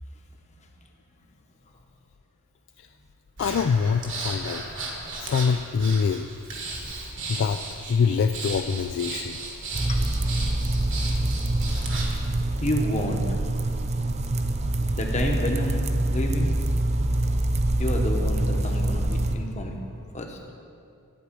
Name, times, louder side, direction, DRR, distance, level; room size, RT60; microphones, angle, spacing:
voice 1, 3.4-4.6 5.2-6.3 7.3-7.6 7.9-9.4, left 6 dB, 55° left, 7 dB, 0.3 m, -24 dB
Breathing, 3.4-12.2, right 3 dB, 60° right, 1.7 m, -35 dB
sound 1, 9.7-19.4, right 1 dB, 30° right, 0.5 m, -25 dB
voice 2, 12.6-13.3 14.9-15.9 16.1-16.5 17.8-19.9 20.1-20.4, left 1 dB, 30° left, 2 dB, 1.1 m, -29 dB
11.5 x 4.8 x 8.3 m, 2.4 s
head